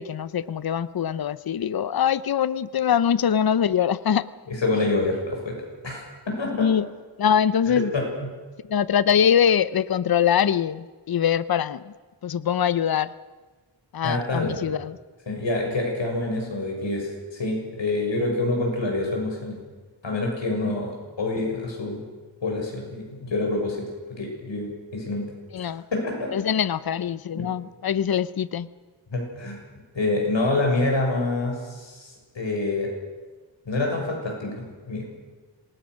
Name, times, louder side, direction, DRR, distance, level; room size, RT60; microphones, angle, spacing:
voice 1, 0.0-4.3 6.5-6.9 7.2-7.9 8.7-11.8 12.2-13.1 13.9-15.0 25.5-25.8 26.3-28.7, left 8 dB, 55° left, 17 dB, 0.7 m, -23 dB
voice 2, 4.5-5.6 5.8-6.7 7.9-8.1 14.0-14.6 15.3-19.6 20.0-22.0 22.4-23.9 24.2-25.2 25.9-26.3 27.3-27.5 29.1-29.6 29.9-32.9 33.7-35.1, left 2 dB, 75° left, 1 dB, 6.9 m, -27 dB
26.5 x 19.5 x 6.4 m, 1.3 s
wide cardioid pair, 85°, 45 cm